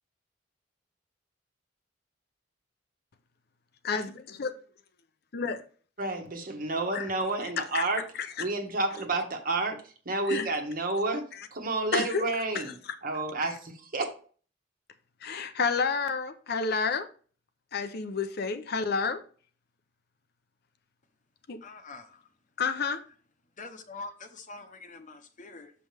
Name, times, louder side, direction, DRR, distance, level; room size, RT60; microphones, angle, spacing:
voice 1, 3.8-4.5 5.3-5.6 6.9-7.1 7.6-7.9 8.1-8.5 10.3-10.5 11.9-12.2 12.5-12.6 15.2-17.1 17.7-19.2 21.5-21.6 22.6-23.0, left 5 dB, 60° left, 0.6 m, -30 dB
voice 2, 6.0-8.0 8.4-12.7 13.0-14.1, right 2 dB, 50° right, 1.4 m, -30 dB
voice 3, 21.6-22.3 23.6-25.7, left 3 dB, 45° left, 0.9 m, -44 dB
6.8 x 5.4 x 3.4 m
head